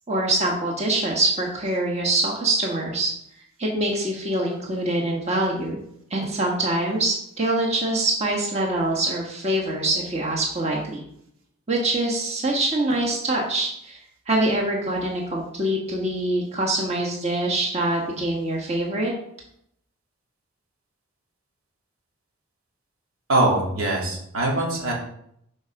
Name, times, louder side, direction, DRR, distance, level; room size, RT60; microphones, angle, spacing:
voice 1, 0.1-3.1 3.6-5.8 6.1-11.1 11.7-14.0 14.3-19.1, right 2 dB, 30° right, -2 dB, 1.7 m, -24 dB
voice 2, 23.3-24.9, right 2 dB, 85° right, -2 dB, 2.8 m, -22 dB
10.0 x 4.9 x 6.0 m, 0.73 s
head